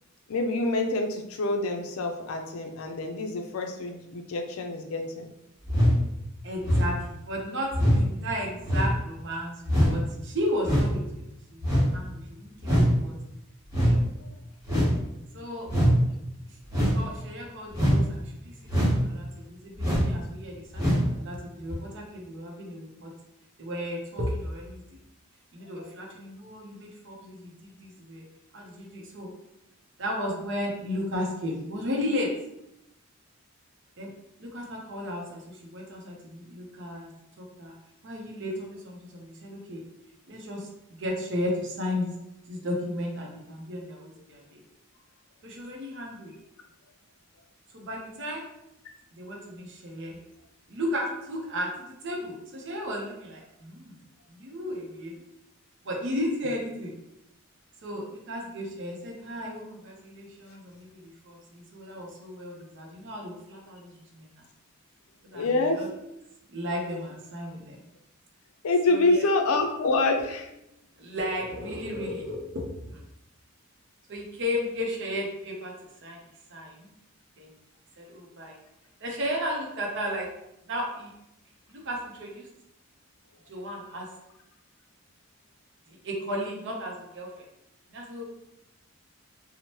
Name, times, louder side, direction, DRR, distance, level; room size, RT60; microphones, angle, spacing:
voice 1, 0.3-5.3 14.2-14.3 65.3-65.8 68.6-70.5, left 2 dB, 80° left, 4 dB, 0.4 m, -26 dB
sound 1, 5.7-6.0 6.6-6.9 7.7-8.0 8.6-8.9 9.6-10.0 10.6-11.0 11.6-11.9 12.6-12.9 13.7-14.0 14.7-15.0 15.7-15.9 16.7-17.0 17.7-18.0 18.7-19.0 19.8-20.1 20.7-21.1 21.7-21.8, equal, 15° right, 1.1 m, -22 dB
voice 2, 6.4-11.2 11.5-13.2 13.7-14.1 15.3-15.7 16.7-23.1 23.6-25.0 25.5-28.2 28.5-29.3 30.0-32.3 34.0-34.1 34.4-37.1 37.4-37.8 38.0-39.8 40.3-42.1 42.5-44.6 45.4-46.3 47.7-48.5 49.1-50.2 50.7-54.0 54.3-55.1 55.8-56.9 57.8-64.4 65.2-65.9 66.5-67.8 68.9-69.2 71.0-73.0 74.1-75.7 76.0-76.2 76.5-76.9 77.4-77.5 78.0-78.6 79.0-80.3 80.7-81.1 81.7-82.5 83.5-84.1 85.9-87.4 87.9-88.2, equal, 55° right, -1 dB, 0.6 m, -34 dB
2.9 x 2.0 x 2.9 m, 0.86 s
head